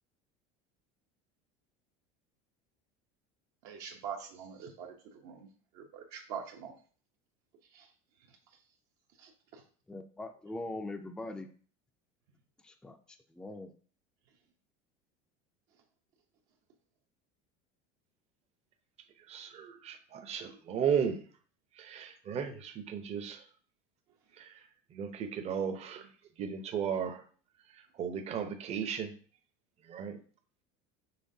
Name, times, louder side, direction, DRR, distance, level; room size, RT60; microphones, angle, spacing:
voice 1, 3.6-5.5 5.7-6.7 7.7-7.9 9.2-9.6, right 7 dB, 70° right, 0 dB, 0.9 m, -44 dB
voice 2, 9.9-11.5 12.6-13.0 13.4-13.7, left 2 dB, 5° left, 6 dB, 0.4 m, -41 dB
voice 3, 19.3-21.2 21.8-23.4 24.4-24.5 24.9-26.0 26.4-27.2 28.0-29.1 29.9-30.2, right 7 dB, 35° right, 6 dB, 0.7 m, -35 dB
5.8 x 3.4 x 2.7 m, 0.42 s
supercardioid pair, 110°, 18 cm